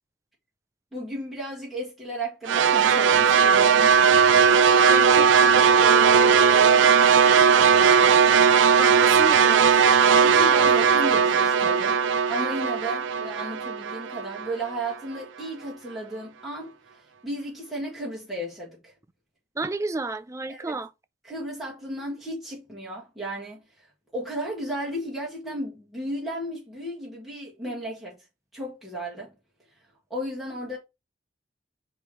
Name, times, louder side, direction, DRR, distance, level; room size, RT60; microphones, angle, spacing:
voice 1, 0.9-3.9 7.5-8.2 10.2-12.0 12.3-18.9 20.5-20.8 21.2-23.6 24.1-28.2 28.5-29.3 30.1-30.8, right 1 dB, ahead, 1.8 m, -34 dB
sound 1, 2.5-14.7, right 6 dB, 85° right, 0.4 m, -18 dB
voice 2, 4.8-6.9 8.8-9.7 19.6-20.9, right 3 dB, 15° right, 0.4 m, -32 dB
8.7 x 3.1 x 4.4 m
head